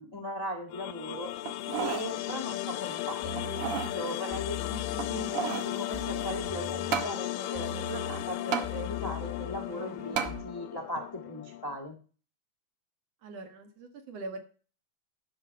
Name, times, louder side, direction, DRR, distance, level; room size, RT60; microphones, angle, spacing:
voice 1, 0.0-1.3 1.7-5.3 5.6-12.0, equal, 30° left, 3 dB, 0.4 m, -38 dB
sound 1, 0.7-11.8, left 15 dB, 85° left, 2.3 m, -36 dB
sound 2, 1.5-2.1 2.5-2.6 3.4-3.9 4.9-5.7 6.9-7.1 8.5-8.7 10.2-10.4 11.0-11.1, right 7 dB, 80° right, 1.3 m, -32 dB
sound 3, 3.2-7.2 7.5-10.4, left 4 dB, 20° right, 2.0 m, -41 dB
voice 2, 13.2-14.4, right 2 dB, 55° right, 6 dB, 2.2 m, -42 dB
11.0 x 7.0 x 5.4 m, 0.38 s
omnidirectional pair, 3.8 m